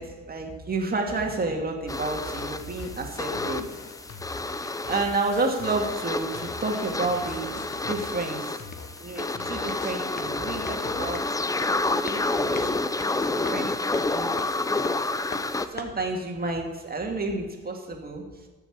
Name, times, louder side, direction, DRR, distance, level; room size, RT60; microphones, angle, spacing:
voice 1, 0.0-3.7 4.0-4.1 4.9-8.6 9.0-11.3 12.0-14.9 15.6-18.5, right 3 dB, 30° right, 2 dB, 2.1 m, -31 dB
sound 1, 1.9-15.7, left 2 dB, 10° left, 0.5 m, -29 dB
sound 2, 2.2-11.2, left 5 dB, 55° left, 1.3 m, -44 dB
sound 3, 7.0-16.1, left 4 dB, 35° left, 1.2 m, -45 dB
13.5 x 7.0 x 4.9 m, 1.3 s
cardioid pair, 90°, 30 cm